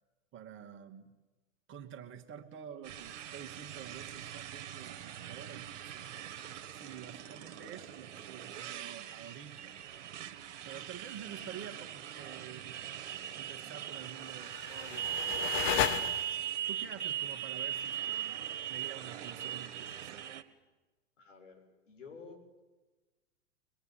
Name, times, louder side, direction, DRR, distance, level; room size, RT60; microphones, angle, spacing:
voice 1, 0.3-1.0 1.7-9.8 10.6-12.8 13.4-16.1 16.7-20.3, right 8 dB, 30° right, 5 dB, 2.2 m, -49 dB
Motorcycle, 2.8-20.4, right 11 dB, 65° right, 1.9 m, -40 dB
sound 1, 14.3-16.7, left 11 dB, 50° left, 1.4 m, -34 dB
voice 2, 21.2-22.6, left 5 dB, 70° left, 4 dB, 6.7 m, -52 dB
24.0 x 21.0 x 9.1 m, 1.2 s
hypercardioid pair, 100°, 38 cm